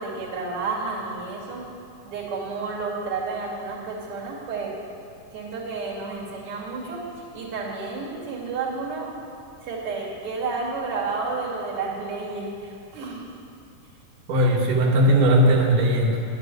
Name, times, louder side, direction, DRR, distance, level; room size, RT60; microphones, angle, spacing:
voice 1, 0.0-1.6 2.1-4.7 5.3-7.0 7.3-9.1 9.6-13.2, right 4 dB, 45° right, -5 dB, 3.1 m, -31 dB
voice 2, 14.3-16.2, right 1 dB, 85° right, -2 dB, 2.8 m, -18 dB
11.0 x 7.7 x 9.9 m, 2.5 s
omnidirectional pair, 3.6 m